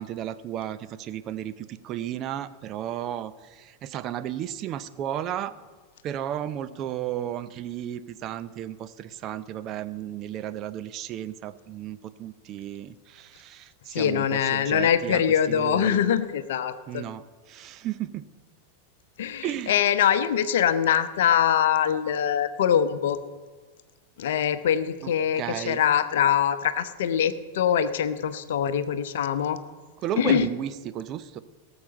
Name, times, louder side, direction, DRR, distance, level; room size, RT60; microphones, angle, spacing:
voice 1, 0.0-5.6 6.0-15.2 15.5-16.0 16.9-18.3 19.4-19.8 25.0-25.8 30.0-31.4, right 11 dB, 35° right, 12 dB, 0.5 m, -34 dB
voice 2, 13.9-17.0 19.2-23.2 24.2-29.6 30.2-30.5, left 9 dB, 55° left, 12 dB, 0.8 m, -23 dB
18.5 x 7.0 x 5.2 m, 1.4 s
figure-of-eight pair, 90°, 0 cm